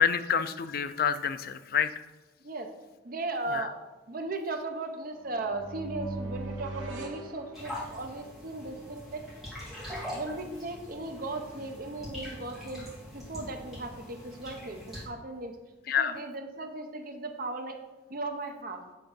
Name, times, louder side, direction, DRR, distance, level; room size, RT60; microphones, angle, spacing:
voice 1, 0.0-1.9 3.5-3.7 15.9-16.2, left 7 dB, 50° left, 11 dB, 0.4 m, -27 dB
voice 2, 3.0-3.8 4.1-9.3 10.1-15.6 16.0-17.8 18.1-18.8, right 2 dB, 50° right, 5 dB, 0.8 m, -37 dB
sound 1, 5.2-8.2, right 2 dB, 85° right, 1.4 m, -40 dB
sound 2, 7.5-15.1, left 1 dB, ahead, 2.1 m, -43 dB
7.9 x 3.7 x 5.4 m, 1.2 s
head